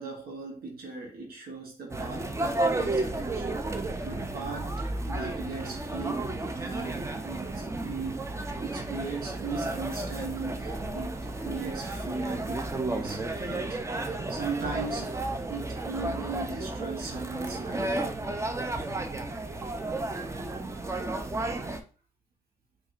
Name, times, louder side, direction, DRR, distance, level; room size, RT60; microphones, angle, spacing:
voice 1, 0.0-6.3 6.6-8.3 8.6-18.0, right 4 dB, 75° right, 1.0 m, -38 dB
sound 1, 1.9-21.8, right 2 dB, 20° right, 0.5 m, -33 dB
4.8 x 2.4 x 2.5 m
supercardioid pair, 60°, 16 cm